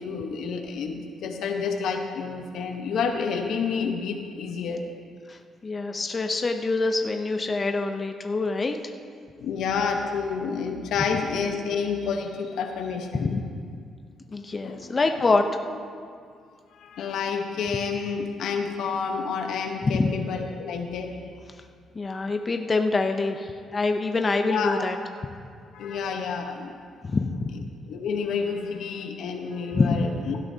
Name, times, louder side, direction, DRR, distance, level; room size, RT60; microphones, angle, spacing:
voice 1, 0.0-4.9 9.4-13.4 14.6-14.9 15.2-15.3 16.7-21.2 24.5-24.8 25.7-26.8 27.9-30.4, left 5 dB, 75° left, 4 dB, 1.0 m, -29 dB
voice 2, 5.3-8.8 13.1-13.4 14.3-15.5 19.8-20.1 22.0-25.0 27.0-27.5 29.7-30.0, left 3 dB, 30° left, 5 dB, 0.6 m, -25 dB
16.5 x 12.5 x 2.8 m, 2.2 s
cardioid pair, 90°, 0 cm